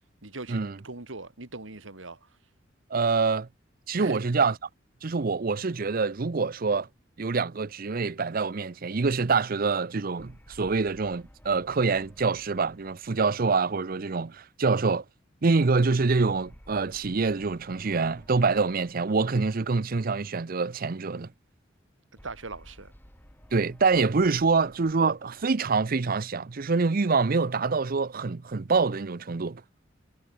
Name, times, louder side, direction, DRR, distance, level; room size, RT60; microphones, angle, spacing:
voice 1, 0.2-2.3 4.0-4.2 22.2-22.9, right 3 dB, 90° right, 2.5 m, -40 dB
voice 2, 2.9-3.5 3.9-4.6 5.0-6.9 7.2-15.0 15.4-21.3 23.5-29.6, right 4 dB, 50° right, 0.6 m, -25 dB
sound 1, 10.2-14.7 16.2-20.5 22.2-26.7, equal, 10° left, 6.1 m, -55 dB
head